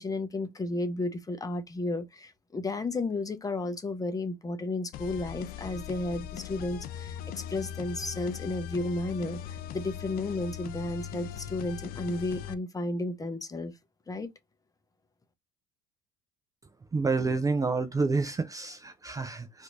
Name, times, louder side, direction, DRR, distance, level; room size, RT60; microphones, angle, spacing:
voice 1, 0.0-13.7 14.1-14.3, left 2 dB, 20° left, 0.8 m, -33 dB
sound 1, 4.9-12.5, left 10 dB, 55° left, 0.4 m, -40 dB
voice 2, 16.9-19.6, right 4 dB, 20° right, 0.5 m, -29 dB
4.2 x 2.6 x 2.4 m
hypercardioid pair, 75°, 18 cm